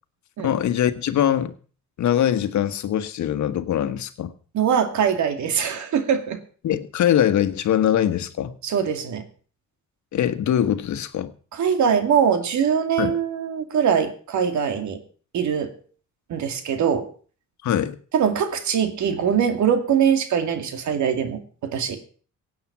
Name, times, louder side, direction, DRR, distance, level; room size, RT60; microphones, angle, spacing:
voice 1, 0.4-1.5 2.0-4.3 6.6-8.6 10.1-11.3 13.0-13.2 17.6-17.9, left 10 dB, 70° left, 11 dB, 1.4 m, -22 dB
voice 2, 4.5-6.4 8.6-9.2 11.5-15.0 15.3-15.8 16.3-17.1 18.1-22.0, right 7 dB, 70° right, 7 dB, 2.5 m, -22 dB
16.5 x 8.7 x 6.0 m, 0.41 s
cardioid pair, 90°, 30 cm